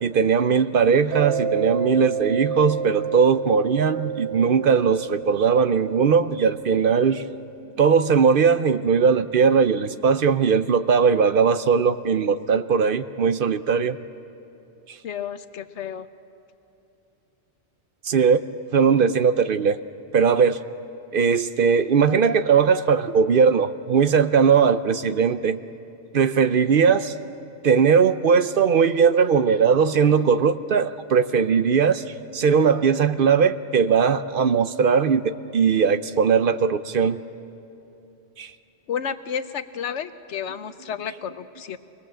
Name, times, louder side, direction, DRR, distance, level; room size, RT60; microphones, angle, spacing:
voice 1, 0.0-7.2 7.8-14.0 18.0-18.4 18.7-19.8 20.1-20.6 21.1-25.6 26.1-27.1 27.6-32.0 32.3-37.2 38.4-38.5, right 6 dB, 55° right, 11 dB, 0.7 m, -19 dB
Mallet percussion, 1.1-7.5, right 5 dB, 90° right, 1.3 m, -30 dB
voice 2, 15.0-16.1 38.9-41.8, left 7 dB, 80° left, 11 dB, 1.1 m, -31 dB
25.0 x 19.5 x 7.5 m, 2.9 s
omnidirectional pair, 1.2 m